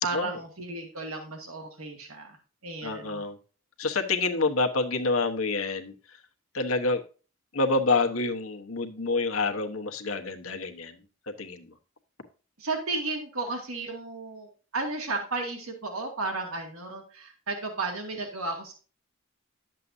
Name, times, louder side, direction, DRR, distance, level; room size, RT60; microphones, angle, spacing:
voice 1, 0.0-2.4 2.6-3.2 12.6-18.7, right 3 dB, 85° right, 3 dB, 1.9 m, -33 dB
voice 2, 2.8-3.4 3.8-6.2 6.5-7.0 7.5-11.0 11.3-11.7, left 3 dB, 80° left, 5 dB, 1.2 m, -27 dB
11.0 x 7.5 x 2.7 m, 0.36 s
head